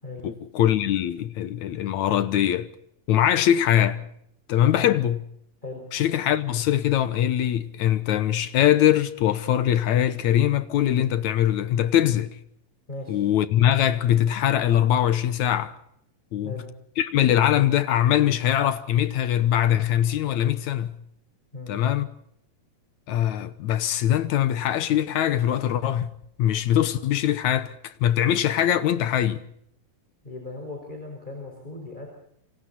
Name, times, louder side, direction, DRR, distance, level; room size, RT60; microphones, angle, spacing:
voice 1, 0.2-2.7 3.1-4.0 4.5-5.3 5.9-12.4 13.1-15.7 16.3-16.6 17.0-21.0 21.7-22.1 23.1-29.4, left 11 dB, 70° left, 2.1 m, -22 dB
voice 2, 12.9-13.2 16.4-16.7 21.5-21.8 30.2-32.1, left 2 dB, 10° left, 5.3 m, -37 dB
28.0 x 26.0 x 4.2 m
omnidirectional pair, 4.0 m